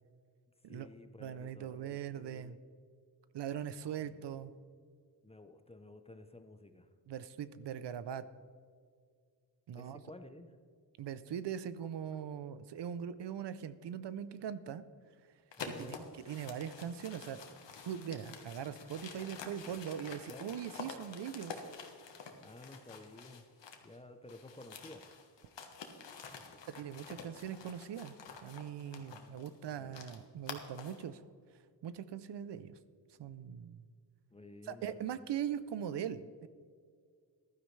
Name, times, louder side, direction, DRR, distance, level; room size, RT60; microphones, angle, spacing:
voice 1, 0.7-2.6 4.0-4.5 5.2-6.9 9.8-10.6 15.5-16.1 20.3-20.5 22.4-23.5 23.8-25.1 29.0-30.0 34.3-35.1, left 2 dB, 15° left, 8 dB, 0.7 m, -53 dB
voice 2, 1.2-2.6 3.3-4.5 7.1-8.3 9.7-10.0 11.0-14.8 15.6-16.0 16.3-17.6 17.8-21.6 26.7-28.1 28.4-31.2 31.8-32.8 33.2-33.8 34.7-36.5, right 9 dB, 70° right, 14 dB, 0.6 m, -41 dB
sound 1, 15.5-24.0 24.3-31.1, left 5 dB, 75° left, 1.4 m, -49 dB
15.0 x 12.5 x 3.3 m, 2.1 s
wide cardioid pair, 125°, 43 cm